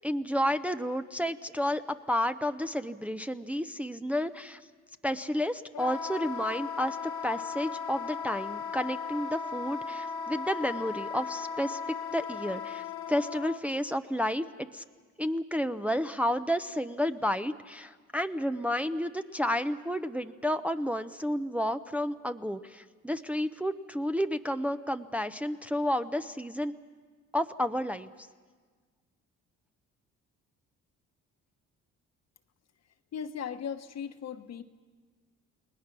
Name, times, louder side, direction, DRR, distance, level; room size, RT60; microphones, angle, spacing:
voice 1, 0.0-1.8 2.1-4.6 5.0-11.8 12.1-14.8 15.2-26.7 27.3-28.1, equal, 5° right, 8 dB, 0.6 m, -31 dB
Wind instrument woodwind instrument, 5.7-13.6, left 5 dB, 75° left, 1.0 m, -37 dB
voice 2, 33.1-34.6, left 7 dB, 60° left, 8 dB, 1.2 m, -37 dB
29.5 x 19.5 x 6.1 m, 1.5 s
cardioid pair, 90°, 30 cm